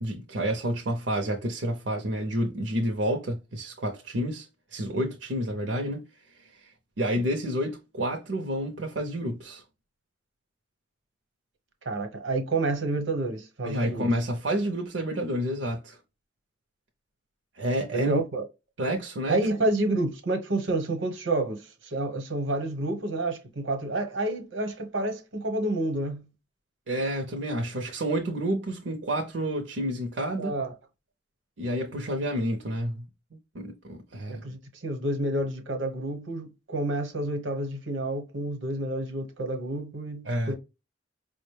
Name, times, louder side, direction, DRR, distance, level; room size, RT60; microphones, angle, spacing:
voice 1, 0.0-6.0 6.5-6.7 7.0-9.6 13.6-16.0 17.6-18.2 18.8-19.5 26.9-30.6 31.6-33.1 33.3-34.4 40.2-40.5, equal, 65° right, 0.6 m, -29 dB
voice 2, 11.8-14.0 17.9-18.4 19.3-26.3 30.4-30.7 34.3-40.5, right 2 dB, 85° right, 1.0 m, -29 dB
4.8 x 2.1 x 3.2 m
head